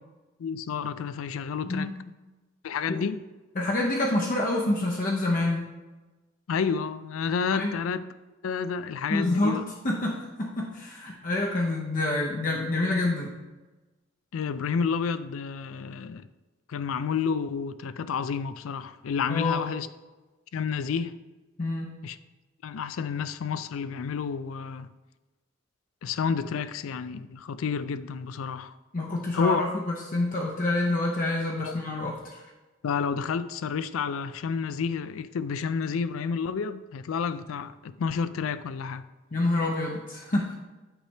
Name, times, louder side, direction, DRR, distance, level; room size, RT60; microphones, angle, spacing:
voice 1, 0.4-1.9 2.6-3.2 6.5-8.1 8.4-9.7 14.3-16.3 16.7-19.9 20.5-21.2 22.0-22.2 22.6-24.9 26.0-28.7 29.3-29.7 31.6-31.7 32.8-39.1, left 6 dB, 90° left, 0.4 m, -30 dB
voice 2, 3.6-5.7 7.5-7.7 9.1-13.4 19.3-19.7 21.6-21.9 28.9-29.8 30.1-32.4 39.3-40.5, left 2 dB, 40° left, 0.8 m, -27 dB
9.0 x 3.3 x 5.5 m
head